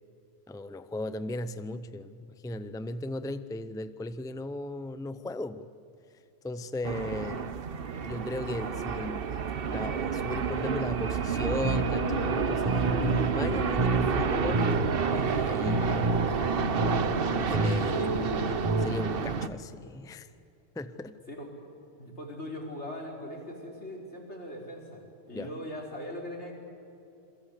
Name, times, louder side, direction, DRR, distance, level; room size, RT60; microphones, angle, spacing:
voice 1, 0.5-5.7 6.4-7.5 8.0-9.4 9.7-12.8 13.3-14.7 15.1-16.0 16.3-16.5 17.5-18.1 18.8-20.3 20.8-21.2 25.3-25.5, left 2 dB, 5° left, 12 dB, 0.6 m, -37 dB
sound 1, 6.8-19.5, right 6 dB, 60° right, 1.1 m, -30 dB
sound 2, 11.6-18.9, right 2 dB, 25° right, 1.3 m, -30 dB
voice 2, 15.6-16.0 17.9-18.2 21.3-21.5 22.0-26.5, left 1 dB, 85° left, 0 dB, 5.1 m, -40 dB
28.5 x 22.5 x 8.3 m, 2.8 s
omnidirectional pair, 1.1 m